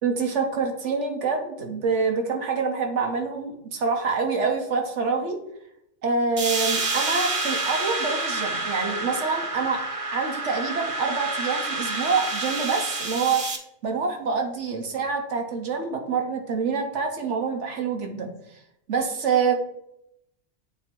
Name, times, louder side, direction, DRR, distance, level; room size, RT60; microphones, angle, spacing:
voice 1, 0.0-5.4 6.0-9.8 10.1-13.4 13.8-18.3 18.9-19.5, right 5 dB, 70° right, 3 dB, 1.2 m, -26 dB
sound 1, 6.4-13.6, right 2 dB, 40° right, 0.5 m, -28 dB
8.3 x 2.8 x 4.4 m, 0.77 s
omnidirectional pair, 1.3 m